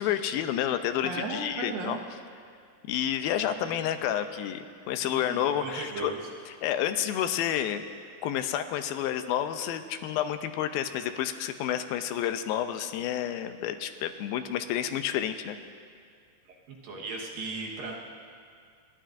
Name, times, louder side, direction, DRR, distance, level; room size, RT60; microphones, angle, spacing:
voice 1, 0.0-2.0 2.9-6.1 6.6-7.9 8.2-15.6, left 10 dB, 85° left, 9 dB, 2.4 m, -30 dB
voice 2, 1.0-2.0 3.4-3.8 5.0-6.2 16.5-16.6 16.8-17.9, right 3 dB, 75° right, -1 dB, 3.0 m, -36 dB
28.5 x 11.5 x 2.6 m, 2.3 s
omnidirectional pair, 4.2 m